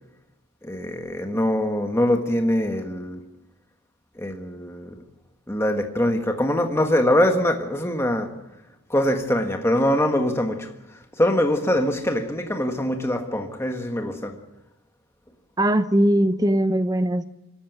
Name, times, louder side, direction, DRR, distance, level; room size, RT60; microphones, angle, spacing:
voice 1, 0.6-3.3 4.1-5.0 5.5-8.4 8.9-10.7 11.2-14.4, left 1 dB, 10° left, 1.5 m, -23 dB
voice 2, 15.6-17.2, right 1 dB, 15° right, 0.8 m, -20 dB
25.5 x 13.5 x 9.2 m
head